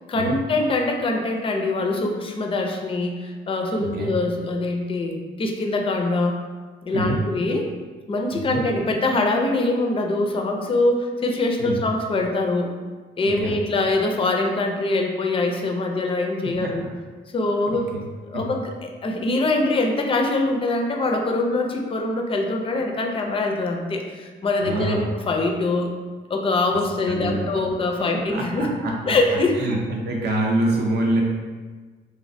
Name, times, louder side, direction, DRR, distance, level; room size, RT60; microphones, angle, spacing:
voice 1, 0.1-6.4 6.8-7.7 8.1-12.7 13.2-16.9 17.3-17.9 18.2-25.9 26.3-28.7 29.1-29.6, left 2 dB, 25° left, 3 dB, 0.4 m, -23 dB
voice 2, 3.8-4.1 6.9-7.2 8.3-8.6 11.6-11.8 13.2-13.5 16.4-16.7 17.7-18.0 18.3-18.4 24.6-25.1 27.1-27.6 28.3-28.9 29.6-31.2, right 2 dB, 55° right, -1 dB, 0.5 m, -26 dB
3.2 x 2.5 x 2.6 m, 1.4 s
cardioid pair, 90°, 20 cm